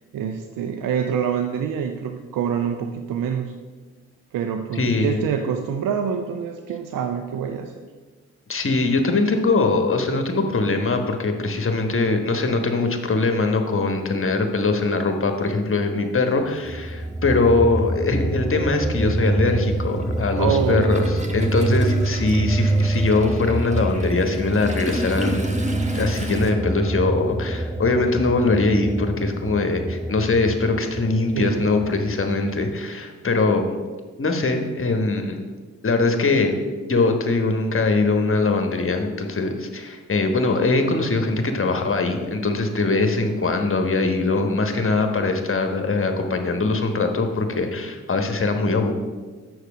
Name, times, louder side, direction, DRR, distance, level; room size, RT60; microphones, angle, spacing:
voice 1, 0.1-3.5 4.3-7.7 20.4-21.2 31.3-31.7, right 7 dB, 65° right, 6 dB, 0.6 m, -26 dB
voice 2, 4.7-5.3 8.5-25.5 25.9-33.8 34.2-35.4 35.8-36.5 36.9-48.9, left 3 dB, 35° left, 5 dB, 1.3 m, -22 dB
Toilet flush, 16.0-16.1 17.4-17.5 17.9-26.5, equal, 20° right, 1.4 m, -34 dB
sound 1, 16.6-32.8, right 2 dB, ahead, 0.4 m, -26 dB
6.6 x 6.4 x 5.0 m, 1.4 s
hypercardioid pair, 40°, 35 cm